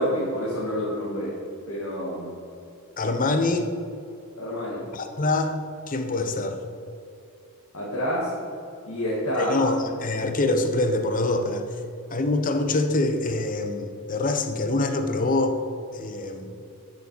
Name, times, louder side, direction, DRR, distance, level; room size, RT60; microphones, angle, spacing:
voice 1, 0.0-1.4 1.7-2.4 4.4-4.8 7.7-8.3 8.9-9.7, equal, 70° left, -6 dB, 1.7 m, -28 dB
voice 2, 3.0-3.7 4.9-5.6 5.9-6.6 9.4-11.7 12.1-15.5 15.9-16.5, left 2 dB, 40° left, 7 dB, 0.7 m, -25 dB
10.0 x 6.5 x 4.6 m, 2.7 s
head